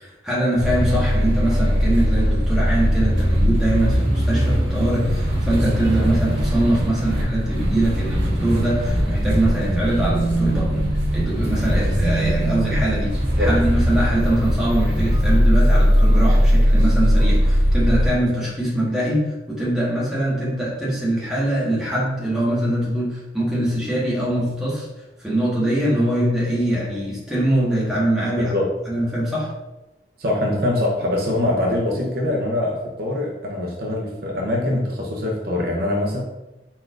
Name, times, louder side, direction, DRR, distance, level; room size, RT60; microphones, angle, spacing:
voice 1, 0.0-24.9 25.2-28.5 28.9-29.5, right 1 dB, 5° right, -8 dB, 1.4 m, -23 dB
sound 1, 0.6-18.1, equal, 80° right, 1.6 m, -19 dB
voice 2, 30.2-36.2, left 1 dB, 55° right, -1 dB, 0.7 m, -23 dB
4.5 x 4.3 x 2.5 m, 0.98 s
head